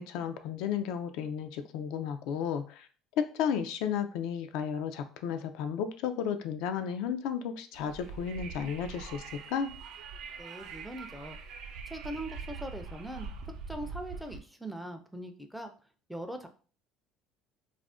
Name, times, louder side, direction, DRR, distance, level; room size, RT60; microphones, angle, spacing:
voice 1, 0.0-2.9 3.2-9.7, left 8 dB, 75° left, 8 dB, 0.3 m, -33 dB
Wind, 7.7-14.4, right 5 dB, 70° right, 0.5 m, -43 dB
voice 2, 10.4-11.4 11.9-13.3 13.7-15.7 16.1-16.5, right 1 dB, ahead, 6 dB, 0.4 m, -41 dB
2.4 x 2.0 x 3.5 m, 0.39 s
cardioid pair, 120°, 0 cm